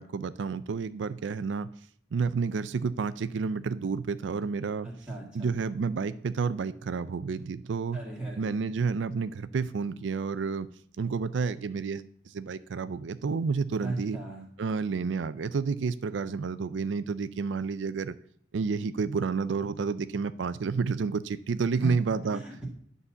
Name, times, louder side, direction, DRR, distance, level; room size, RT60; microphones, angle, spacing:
voice 1, 0.0-1.7 2.1-4.9 5.3-8.0 8.4-10.7 11.0-12.0 12.3-14.2 14.6-18.1 18.5-22.4, right 5 dB, 85° right, 13 dB, 0.4 m, -30 dB
voice 2, 4.8-5.5 7.9-8.6 13.8-14.5 21.7-21.9 22.2-22.7, right 1 dB, 10° right, -8 dB, 1.8 m, -37 dB
9.7 x 4.1 x 6.9 m, 0.62 s
head